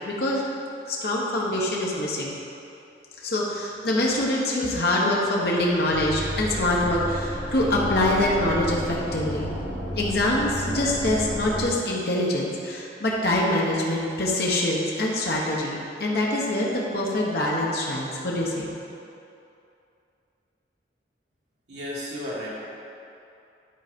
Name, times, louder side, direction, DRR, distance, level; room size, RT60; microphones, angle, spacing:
voice 1, 0.0-0.5 0.9-2.4 3.2-9.5 10.0-18.7, left 1 dB, 60° left, -4 dB, 1.1 m, -24 dB
sound 1, 5.9-11.7, equal, 80° left, 2.0 m, -32 dB
voice 2, 21.7-22.5, left 1 dB, 75° right, -7 dB, 1.7 m, -33 dB
10.0 x 4.0 x 5.2 m, 2.7 s
head